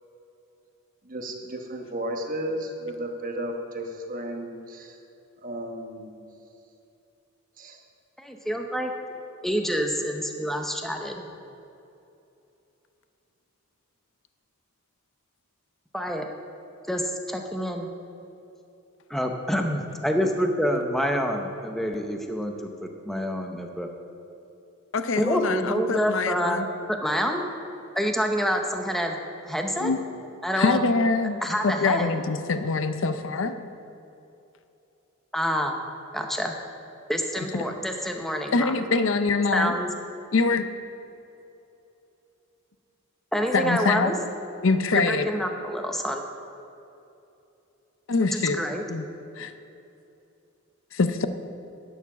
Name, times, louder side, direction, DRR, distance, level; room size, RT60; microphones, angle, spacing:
voice 1, 1.0-5.0 5.4-6.2 7.6-7.8, right 1 dB, 40° right, 3 dB, 1.1 m, -34 dB
voice 2, 8.2-8.9 9.4-11.2 15.9-16.3 16.9-17.9 19.1-23.9 25.2-27.4 27.9-29.2 29.5-29.9 30.4-30.8 31.4-32.1 35.3-35.8 36.1-36.5 37.1-38.8 39.5-39.9 43.3-44.2 44.9-46.2 48.3-48.9, equal, ahead, 3 dB, 0.7 m, -27 dB
voice 3, 24.9-26.7 29.8-30.0 30.6-31.4 31.6-33.5 37.5-37.7 38.5-39.8 40.3-40.7 43.5-44.2 44.6-45.3 48.1-48.6 48.9-49.1 49.4-49.5 50.9-51.3, left 4 dB, 60° left, 10 dB, 0.5 m, -24 dB
10.5 x 7.1 x 6.0 m, 2.8 s
head